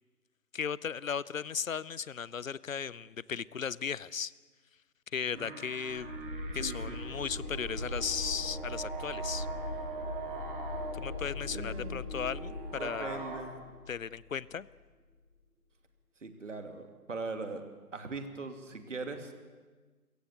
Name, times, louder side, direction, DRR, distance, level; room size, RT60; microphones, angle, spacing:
voice 1, 0.5-4.3 5.1-6.1 6.5-9.5 10.9-13.2 13.9-14.7, left 7 dB, 55° left, 21 dB, 0.7 m, -36 dB
sound 1, 5.2-13.4, right 4 dB, 35° right, 3.3 m, -43 dB
sound 2, 5.8-14.7, left 2 dB, 10° right, 0.9 m, -40 dB
voice 2, 6.5-7.0 11.5-12.1 12.8-13.7 16.2-17.6 17.9-19.3, right 3 dB, 50° right, 7 dB, 2.6 m, -40 dB
28.5 x 16.5 x 8.2 m, 1.4 s
figure-of-eight pair, 155°, 47 cm